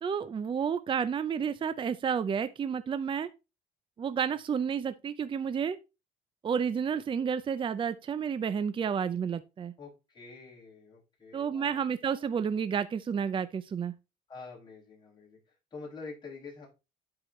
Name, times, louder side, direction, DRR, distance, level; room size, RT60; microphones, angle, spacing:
voice 1, 0.0-3.3 4.0-5.8 6.4-9.7 11.3-13.9, right 7 dB, 30° right, 0.5 m, -31 dB
voice 2, 9.8-11.9 12.2-12.3 14.3-16.7, left 4 dB, 25° left, 5.7 m, -47 dB
11.5 x 5.0 x 3.1 m
cardioid pair, 110°, 17 cm